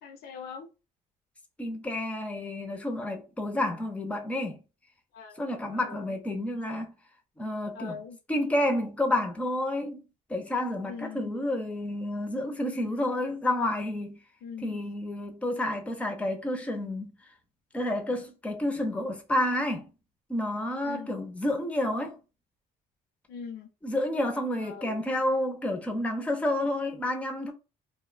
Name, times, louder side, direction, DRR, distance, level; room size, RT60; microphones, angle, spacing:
voice 1, 0.0-0.7 5.1-5.4 5.7-6.2 7.7-8.2 10.8-11.3 12.7-13.1 14.4-14.8 20.8-21.2 23.3-23.7 24.6-25.1, left 6 dB, 70° left, 0.6 m, -42 dB
voice 2, 1.6-4.6 5.4-6.9 7.4-8.0 8.3-10.0 10.3-14.2 14.6-17.2 17.7-19.9 20.3-22.2 23.8-27.5, left 1 dB, 10° left, 0.5 m, -30 dB
2.6 x 2.1 x 2.4 m
cardioid pair, 110°, 17 cm